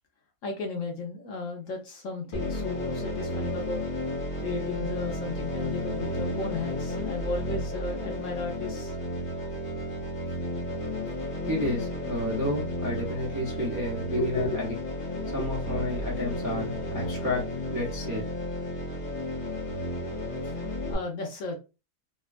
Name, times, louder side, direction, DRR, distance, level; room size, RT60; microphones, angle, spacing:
voice 1, 0.4-3.8 4.4-9.0 14.2-14.6 15.1-15.6 16.9-17.0 20.4-21.6, left 3 dB, 65° left, 2 dB, 0.9 m, -34 dB
sound 1, 2.3-20.9, left 1 dB, 90° left, 0.4 m, -33 dB
voice 2, 11.5-14.7 15.3-18.3, left 1 dB, 25° right, -4 dB, 0.4 m, -31 dB
2.9 x 2.2 x 2.4 m, 0.30 s
omnidirectional pair, 1.7 m